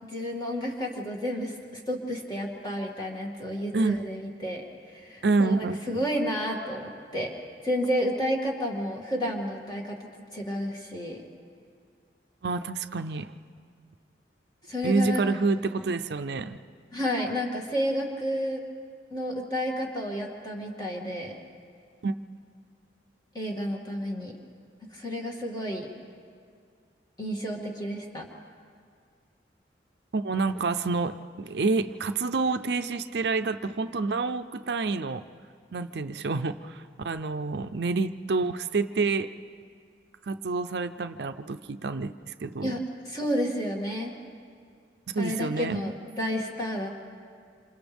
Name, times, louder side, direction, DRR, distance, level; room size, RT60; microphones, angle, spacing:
voice 1, 0.0-7.3 7.6-10.0 10.3-11.2 14.7-15.2 16.9-18.6 19.1-21.3 23.3-24.3 24.9-25.9 27.2-28.3 42.6-44.1 45.2-46.9, equal, 20° left, -1 dB, 2.4 m, -31 dB
voice 2, 3.7-4.0 5.2-5.8 12.4-13.3 14.8-16.6 22.0-22.1 30.1-35.2 35.7-39.3 40.3-42.7 45.1-45.8, right 3 dB, 65° right, 10 dB, 0.5 m, -28 dB
28.0 x 27.0 x 3.5 m, 2.1 s
head